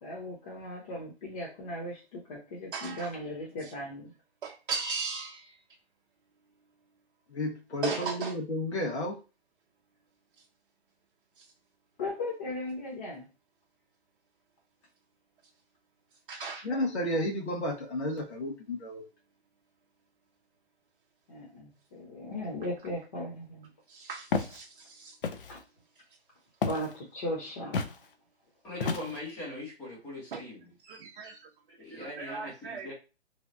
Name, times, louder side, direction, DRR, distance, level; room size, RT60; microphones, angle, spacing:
voice 1, 0.0-4.1 12.0-13.3 21.3-23.7 25.5-25.6 26.6-27.9, left 1 dB, 30° left, -2 dB, 0.9 m, -37 dB
voice 2, 2.7-3.1 3.6-3.7 4.4-5.6 7.8-8.4 11.4-11.5 16.3-16.7 23.9-25.2 30.3-30.5 30.8-32.9, right 5 dB, 50° right, 1 dB, 0.6 m, -38 dB
voice 3, 7.3-9.2 16.6-19.1, left 1 dB, 80° left, -1 dB, 1.4 m, -32 dB
Walk footsteps, 24.3-24.6 25.2-25.6 26.6-26.9 27.7-28.0 28.8-29.3, left 4 dB, 55° left, 0.5 m, -31 dB
voice 4, 28.6-30.6 31.8-32.9, left 1 dB, 5° left, -3 dB, 0.6 m, -41 dB
3.2 x 2.3 x 2.6 m, 0.31 s
hypercardioid pair, 155°, 33 cm